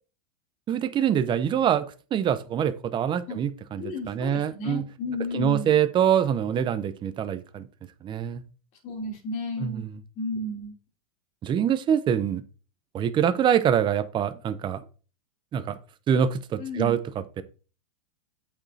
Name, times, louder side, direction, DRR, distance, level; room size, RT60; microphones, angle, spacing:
voice 1, 0.7-1.9 2.1-4.8 5.3-7.7 8.0-8.4 9.6-10.0 11.4-12.4 12.9-14.8 15.5-15.8 16.1-17.0 17.4-17.5, right 9 dB, 25° right, 11 dB, 0.7 m, -25 dB
voice 2, 3.8-5.7 8.8-10.7 16.6-17.0, left 2 dB, 40° left, 1 dB, 3.2 m, -33 dB
8.7 x 6.2 x 2.8 m, 0.37 s
hypercardioid pair, 125°, 20 cm